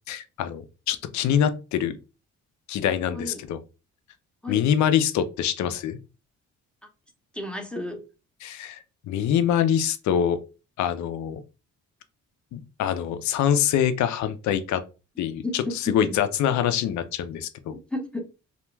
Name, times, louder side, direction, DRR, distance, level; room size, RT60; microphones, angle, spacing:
voice 1, 0.1-2.0 2.7-3.6 4.5-6.0 8.4-8.8 9.1-10.4 10.8-11.4 12.5-14.8 15.2-17.8, left 9 dB, 70° left, 10 dB, 0.5 m, -24 dB
voice 2, 7.3-8.0 15.2-15.8 17.9-18.3, left 2 dB, 5° left, 3 dB, 0.7 m, -33 dB
2.4 x 2.2 x 3.0 m, 0.30 s
cardioid pair, 90°, 30 cm